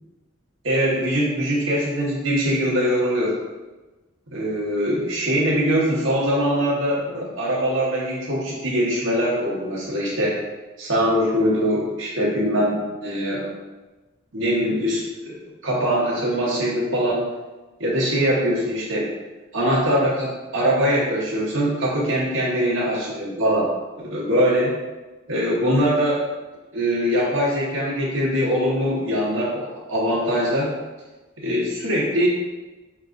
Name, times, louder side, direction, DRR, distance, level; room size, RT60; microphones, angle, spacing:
voice 1, 0.6-3.4 4.3-10.4 10.8-13.5 14.3-15.3 15.6-17.3 17.8-19.1 19.5-23.7 24.0-24.8 25.3-26.3 26.7-30.7 31.4-32.3, equal, 70° right, -5 dB, 0.9 m, -22 dB
4.7 x 3.0 x 2.5 m, 1.2 s
head